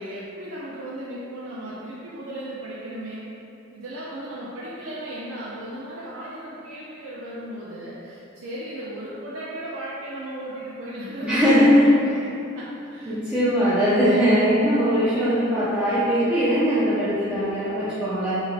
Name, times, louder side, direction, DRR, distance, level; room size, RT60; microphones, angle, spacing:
voice 1, 0.0-3.2 3.7-12.1 12.5-12.7 12.9-13.2 13.4-13.9, right 1 dB, 70° right, -8 dB, 0.4 m, -36 dB
voice 2, 11.2-11.9 13.0-18.4, equal, 5° right, -14 dB, 0.4 m, -20 dB
3.2 x 2.4 x 2.4 m, 2.7 s
head